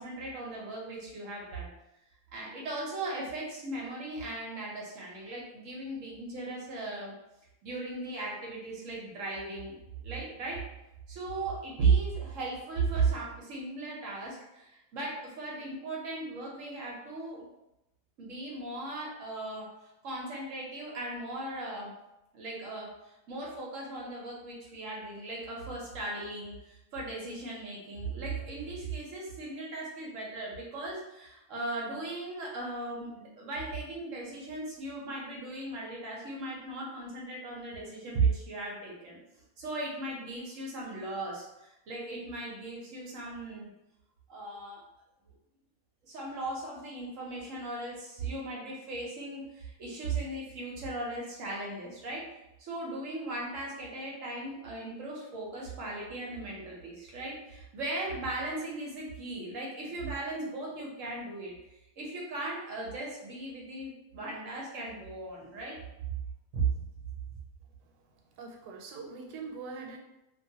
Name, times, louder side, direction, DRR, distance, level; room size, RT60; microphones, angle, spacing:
voice 1, 0.0-1.7 2.3-7.1 7.6-9.7 10.0-10.6 11.1-17.4 18.2-19.7 20.0-21.9 22.3-39.2 39.6-43.7 44.3-44.8 46.0-52.2 52.6-61.5 62.0-65.8 66.5-66.7, right 3 dB, 60° right, -3 dB, 0.9 m, -36 dB
voice 2, 68.4-70.0, right 4 dB, 90° right, 2 dB, 1.2 m, -42 dB
2.8 x 2.3 x 2.7 m, 0.89 s
omnidirectional pair, 1.7 m